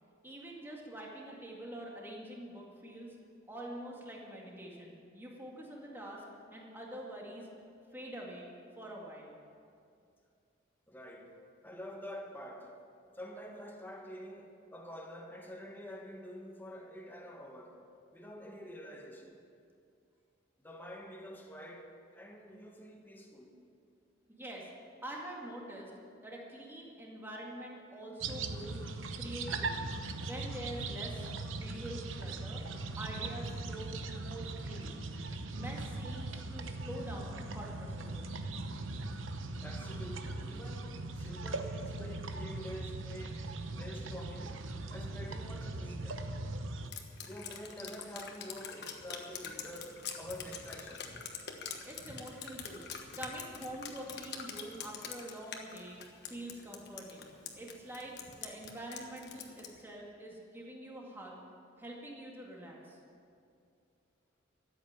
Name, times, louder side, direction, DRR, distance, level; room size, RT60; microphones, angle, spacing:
voice 1, 0.2-3.2 3.5-6.2 6.5-7.5 7.9-8.5 8.8-9.3 24.3-24.7 25.0-25.9 26.2-28.8 29.2-29.9 30.2-32.6 33.0-35.0 35.5-38.4 51.8-61.4 61.8-63.0, right 1 dB, 10° right, 2.1 m, -45 dB
voice 2, 10.9-12.7 13.1-17.8 18.1-19.3 20.6-23.6 39.6-43.5 43.7-44.6 44.9-46.3 47.2-51.1, equal, 10° left, 1.5 m, -47 dB
sound 1, 28.2-46.9, right 2 dB, 80° right, 0.9 m, -40 dB
Drip, 46.9-59.8, left 6 dB, 55° left, 1.3 m, -45 dB
13.5 x 8.4 x 8.9 m
head